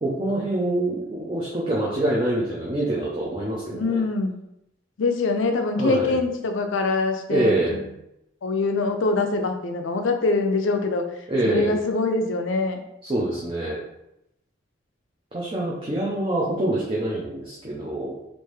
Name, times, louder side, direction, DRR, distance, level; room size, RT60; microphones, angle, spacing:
voice 1, 0.0-4.0 5.8-6.2 7.3-7.9 11.3-11.7 13.0-13.8 15.3-18.2, right 1 dB, 25° right, -5 dB, 0.5 m, -25 dB
voice 2, 3.7-4.4 5.0-7.5 8.4-11.0 11.4-12.8, left 3 dB, 85° left, 5 dB, 0.5 m, -23 dB
3.4 x 2.6 x 3.2 m, 0.83 s
head